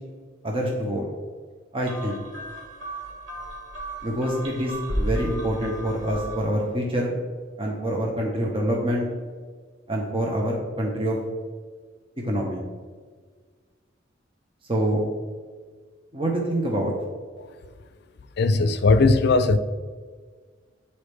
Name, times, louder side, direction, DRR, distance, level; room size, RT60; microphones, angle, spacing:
voice 1, 0.4-1.1 1.7-2.2 4.0-7.1 7.6-9.1 9.9-11.2 12.2-12.6 14.7-15.0 16.1-16.9, right 1 dB, 30° right, 0.8 m, -26 dB
sound 1, 1.8-6.6, equal, 75° right, 1.7 m, -33 dB
voice 2, 18.4-19.6, left 3 dB, 60° left, 0.4 m, -19 dB
8.6 x 4.2 x 3.3 m
head